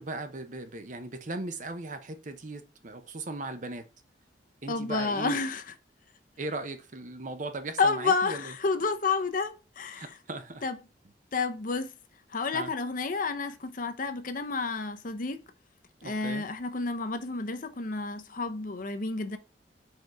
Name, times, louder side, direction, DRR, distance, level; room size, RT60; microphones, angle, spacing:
voice 1, 0.0-3.9 4.6-5.4 6.4-8.5 9.9-10.6 12.5-12.7 16.0-16.5, right 2 dB, 45° right, 0.8 m, -38 dB
voice 2, 4.7-5.6 7.8-10.1 10.6-10.8 11.3-11.9 12.3-15.4 16.0-19.4, left 4 dB, 50° left, 0.8 m, -30 dB
4.7 x 4.7 x 4.7 m
head